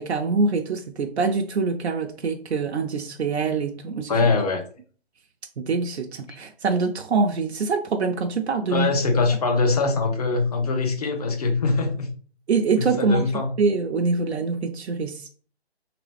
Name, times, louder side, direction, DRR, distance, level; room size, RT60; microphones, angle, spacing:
voice 1, 0.0-4.2 5.6-8.9 12.5-13.3 13.6-15.3, right 4 dB, 80° right, 0.6 m, -24 dB
voice 2, 4.1-4.6 6.3-6.4 8.7-12.1 12.7-13.5, left 3 dB, 35° left, 0.8 m, -23 dB
3.3 x 2.9 x 3.2 m
figure-of-eight pair, 150°, 32 cm